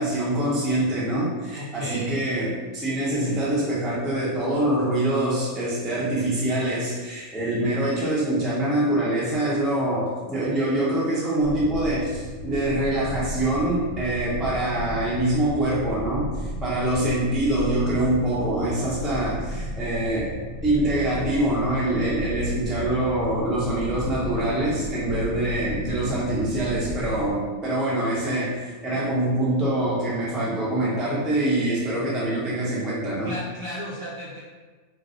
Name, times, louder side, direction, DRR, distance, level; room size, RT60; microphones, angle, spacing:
voice 1, 0.0-20.3 20.6-33.3, right 1 dB, ahead, -8 dB, 0.4 m, -25 dB
voice 2, 1.5-2.2 33.2-34.4, equal, 55° right, -7 dB, 0.7 m, -34 dB
sound 1, 11.4-27.3, equal, 90° right, 1.4 m, -34 dB
3.2 x 2.0 x 3.8 m, 1.4 s
omnidirectional pair, 1.5 m